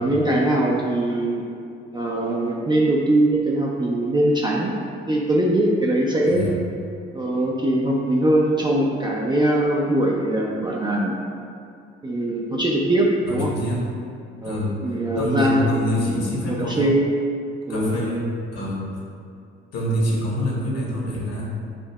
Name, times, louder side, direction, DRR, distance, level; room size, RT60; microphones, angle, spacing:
voice 1, 0.0-1.4 1.9-4.7 5.1-6.6 7.1-11.2 12.0-13.5 14.4-15.7 15.9-17.1 17.7-18.0, right 1 dB, 15° right, -3 dB, 0.4 m, -21 dB
voice 2, 13.2-13.9 14.4-14.7 15.2-16.9 17.7-18.2 18.5-18.8 19.7-21.6, left 1 dB, 50° left, -4 dB, 1.2 m, -26 dB
6.5 x 2.6 x 2.3 m, 2.5 s
figure-of-eight pair, 45°, 32 cm